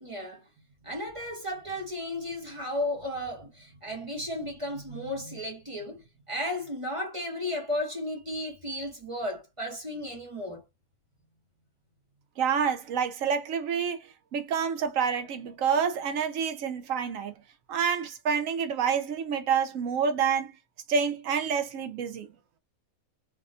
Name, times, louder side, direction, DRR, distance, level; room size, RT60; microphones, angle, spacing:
voice 1, 0.0-0.4 0.8-10.6, left 1 dB, 30° right, 0.8 m, -34 dB
voice 2, 12.4-17.3 17.7-20.6 20.9-22.3, right 6 dB, 70° right, 1.1 m, -28 dB
3.5 x 2.2 x 2.5 m
omnidirectional pair, 1.5 m